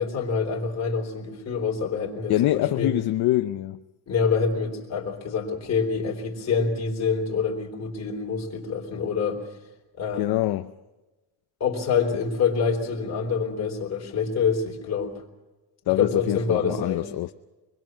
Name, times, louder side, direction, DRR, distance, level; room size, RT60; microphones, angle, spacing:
voice 1, 0.0-2.9 4.1-9.4 10.0-10.4 11.6-15.1 16.0-17.1, left 5 dB, 35° left, 3.8 m, -26 dB
voice 2, 2.3-3.8 10.2-10.7 15.9-17.3, left 15 dB, 55° left, 0.7 m, -24 dB
25.0 x 21.0 x 6.2 m
cardioid pair, 170°, 44 cm